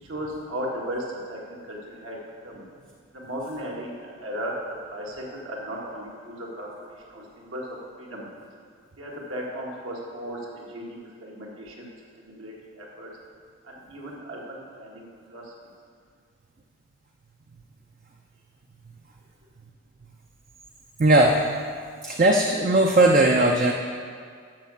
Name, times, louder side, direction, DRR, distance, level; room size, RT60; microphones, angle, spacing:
voice 1, 0.0-2.2 2.4-2.6 3.1-6.7 7.1-7.6 8.0-8.3 9.0-13.1 13.6-15.5, equal, 75° right, -3 dB, 1.7 m, -36 dB
voice 2, 21.0-21.4 22.0-23.7, right 1 dB, 40° right, 1 dB, 0.5 m, -18 dB
7.5 x 5.7 x 7.1 m, 2.2 s
head